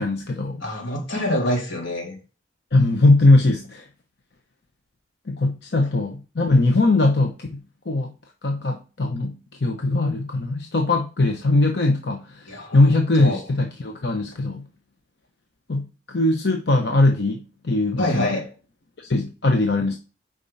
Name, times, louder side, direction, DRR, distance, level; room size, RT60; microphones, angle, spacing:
voice 1, 0.0-0.6 2.7-3.9 5.3-7.6 7.9-8.1 8.4-14.6 15.7-18.4 19.0-19.9, left 2 dB, 60° left, 0.9 m, -20 dB
voice 2, 0.6-2.2 12.5-13.4 18.0-18.5, left 1 dB, 80° left, 3.7 m, -26 dB
8.8 x 5.3 x 4.2 m
head